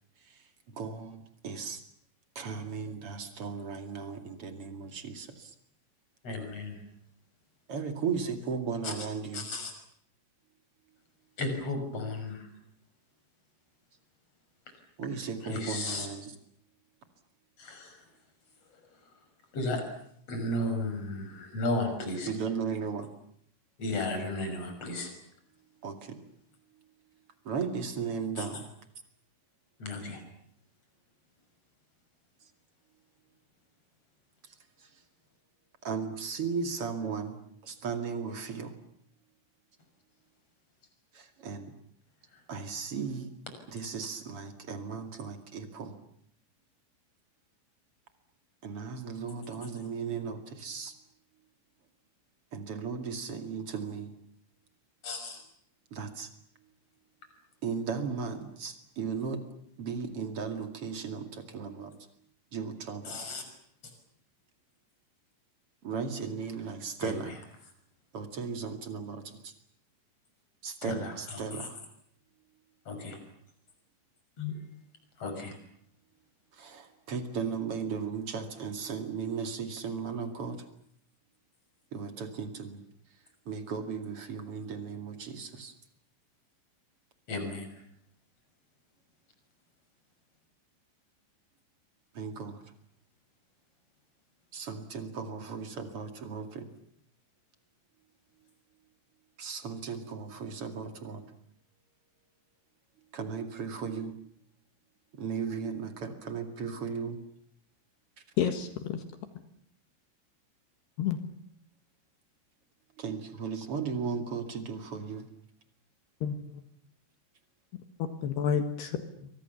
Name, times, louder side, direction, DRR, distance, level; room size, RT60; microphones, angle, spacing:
voice 1, 0.7-1.8 2.3-5.5 7.7-9.6 15.0-16.3 22.3-23.1 25.8-26.2 27.4-28.7 34.8-34.9 35.8-37.4 37.6-38.7 41.1-41.7 42.5-43.3 43.7-46.0 48.6-50.9 52.5-54.2 55.9-56.3 57.6-59.4 59.8-61.9 62.5-63.2 65.8-67.4 68.1-69.5 70.6-71.8 76.5-80.6 81.9-82.8 83.5-85.7 92.1-92.6 94.5-96.7 99.4-101.2 103.1-104.2 105.1-107.2 113.0-115.3, right 5 dB, 45° right, 7 dB, 2.1 m, -36 dB
voice 2, 6.2-6.8 8.8-9.1 9.3-9.7 11.4-12.5 14.7-14.8 15.4-16.1 17.6-18.0 18.7-18.8 19.5-19.8 20.3-22.3 23.8-25.1 28.4-28.5 29.8-30.2 42.3-42.4 55.0-55.4 63.0-63.5 67.0-67.3 70.8-71.7 72.8-73.2 74.4-74.5 75.2-75.6 87.3-87.8, left 2 dB, 30° left, 6 dB, 6.8 m, -34 dB
voice 3, 108.4-109.0 111.0-111.2 116.2-116.6 118.0-119.3, left 8 dB, 65° left, 8 dB, 3.2 m, -30 dB
30.0 x 24.0 x 7.1 m, 0.68 s
omnidirectional pair, 6.0 m